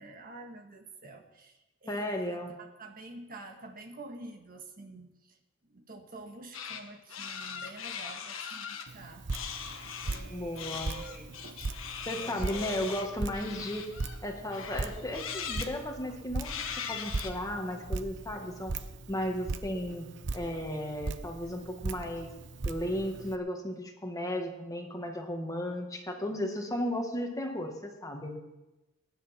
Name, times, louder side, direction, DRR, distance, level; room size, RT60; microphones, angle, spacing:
voice 1, 0.0-5.4 5.7-9.3 10.0-11.4 12.1-12.9, right 2 dB, 45° right, 3 dB, 1.5 m, -48 dB
voice 2, 1.9-2.5 10.3-10.9 12.0-13.9 14.2-18.7 19.1-20.1 20.3-22.3 22.6-28.4, left 1 dB, 15° left, 2 dB, 1.7 m, -35 dB
sound 1, 6.5-6.8 7.1-8.9 9.3-10.2 10.6-14.2 14.5-15.7 16.4-17.3, left 7 dB, 80° left, 1.4 m, -40 dB
Drip, 8.9-23.4, right 3 dB, 65° right, 0.8 m, -39 dB
22.0 x 10.5 x 4.3 m, 1.0 s
head